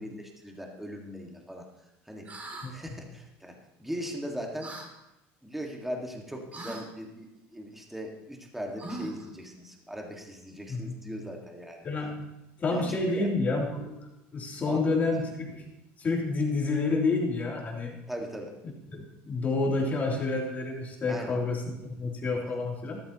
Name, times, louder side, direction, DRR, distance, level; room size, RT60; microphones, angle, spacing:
voice 1, 0.0-1.7 2.1-2.3 2.7-4.8 5.4-11.9 12.7-13.3 14.7-15.0 18.1-18.6 21.1-21.4 22.4-22.6, equal, 5° right, 1 dB, 1.8 m, -39 dB
sound 1, 2.2-2.7 4.6-4.9 6.5-6.9 8.8-9.3, right 2 dB, 25° right, 2.3 m, -39 dB
voice 2, 11.8-12.3 12.6-15.6 16.0-18.0 18.9-23.0, left 3 dB, 30° left, -2 dB, 3.2 m, -29 dB
13.0 x 12.5 x 3.0 m, 0.93 s
supercardioid pair, 115°, 6 cm